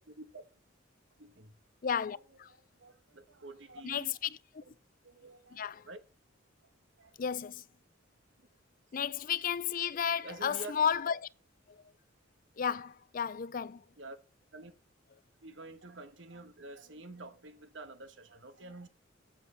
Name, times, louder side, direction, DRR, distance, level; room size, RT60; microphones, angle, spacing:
voice 1, 0.1-0.4 1.2-1.5 2.5-4.2 4.6-4.7 5.0-6.0 7.0-7.1 9.8-9.9 10.2-10.7 14.0-14.2 14.5-14.7 15.4-18.9, right 2 dB, 70° right, 1.3 m, -48 dB
voice 2, 1.8-2.5 3.8-4.6 5.5-5.8 7.2-7.6 8.9-11.3 12.6-13.8, left 7 dB, 45° left, 0.4 m, -33 dB
7.6 x 7.5 x 6.8 m
head